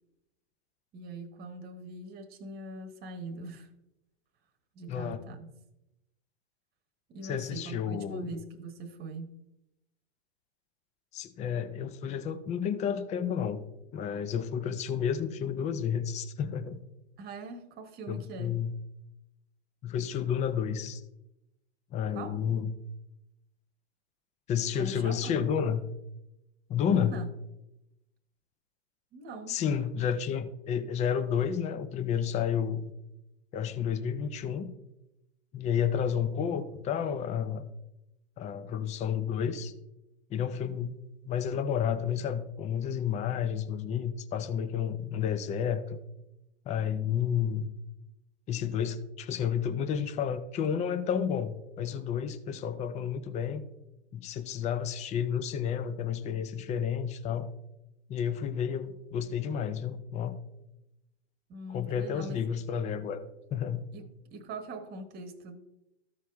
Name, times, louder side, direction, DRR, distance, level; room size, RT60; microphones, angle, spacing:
voice 1, 0.9-3.7 4.7-5.5 7.1-9.4 17.2-18.6 22.1-22.4 24.8-25.4 26.9-27.3 29.1-29.6 61.5-62.4 63.9-65.6, right 2 dB, 30° right, 1.1 m, -42 dB
voice 2, 4.9-5.2 7.2-8.3 11.1-13.7 13.9-16.8 18.1-18.7 19.8-21.0 21.9-22.7 24.5-25.8 26.7-27.1 29.5-32.9 33.5-34.7 35.5-37.7 38.4-39.7 40.3-41.0 41.3-46.0 46.7-47.7 48.5-53.7 54.1-57.5 58.1-60.4 61.7-63.2 63.5-63.9, left 8 dB, 20° left, 0.5 m, -31 dB
13.5 x 4.7 x 3.5 m
hypercardioid pair, 120°, 34 cm